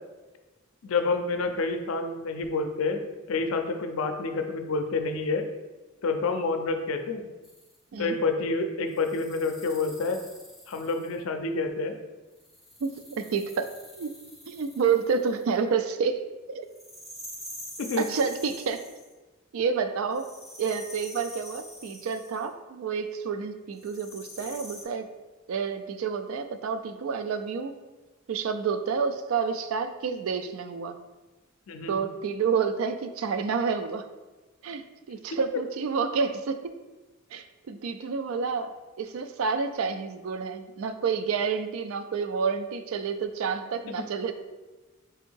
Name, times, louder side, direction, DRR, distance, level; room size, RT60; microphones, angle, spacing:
voice 1, 0.8-3.0 3.3-5.5 6.0-7.3 8.0-10.2 10.7-12.0 17.8-18.0 31.7-32.0 35.3-35.4, left 3 dB, 80° left, 6 dB, 0.4 m, -28 dB
sound 1, 7.4-7.8 8.9-11.2 12.4-15.6 16.7-19.1 20.1-22.5 23.8-24.8, equal, ahead, 0.5 m, -46 dB
voice 2, 12.8-13.7 14.0-14.1 14.5-16.2 16.5-16.7 18.0-18.8 19.5-20.3 20.6-25.1 25.5-27.7 28.3-31.0 31.9-34.0 34.6-34.8 35.1-36.6 37.3-44.3, right 5 dB, 80° right, 9 dB, 0.4 m, -29 dB
3.6 x 2.7 x 4.4 m, 1.2 s
head